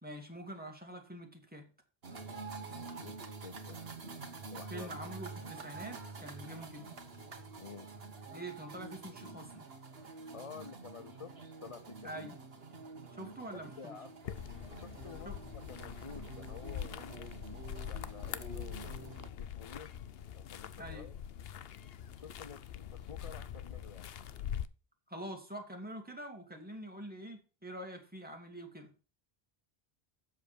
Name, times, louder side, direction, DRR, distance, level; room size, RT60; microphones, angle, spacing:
voice 1, 0.0-1.7 4.7-7.0 8.3-9.7 12.0-12.4 13.1-14.0 15.3-15.4 20.8-21.1 25.1-28.9, right 1 dB, 10° right, 2.3 m, -45 dB
sound 1, 2.0-19.3, right 4 dB, 70° right, 1.7 m, -48 dB
voice 2, 2.8-3.8 4.5-5.0 7.6-7.9 10.0-12.3 13.8-14.2 14.7-15.4 15.7-17.3 17.9-19.9 20.3-21.2 22.2-24.1 25.2-25.3, left 6 dB, 40° left, 0.6 m, -51 dB
sound 2, 14.2-24.7, left 9 dB, 70° left, 0.9 m, -43 dB
7.8 x 7.1 x 6.8 m
omnidirectional pair, 1.0 m